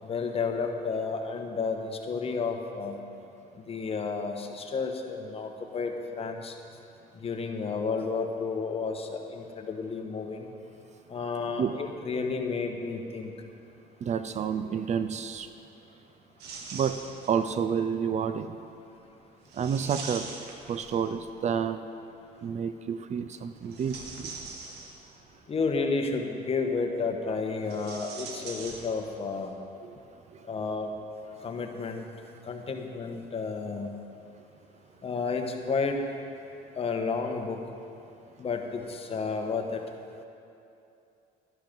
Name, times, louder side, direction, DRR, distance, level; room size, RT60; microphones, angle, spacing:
voice 1, 0.0-3.0 3.5-6.5 7.1-10.5 11.1-13.3 25.5-29.5 30.4-30.9 31.4-32.1 32.4-33.9 35.0-36.0 36.7-37.6 38.4-39.8, left 4 dB, 35° left, 4 dB, 1.3 m, -31 dB
voice 2, 14.0-15.5 16.7-17.0 17.3-18.6 19.5-20.3 20.7-21.8 22.4-24.3 29.8-29.9, right 7 dB, 45° right, 11 dB, 0.5 m, -29 dB
sound 1, 16.4-17.5 19.5-21.3 23.6-25.3 27.6-29.3 29.6-29.7 30.7-30.8, right 4 dB, 75° right, 1.6 m, -42 dB
12.5 x 11.0 x 5.3 m, 2.7 s
cardioid pair, 110°, 17 cm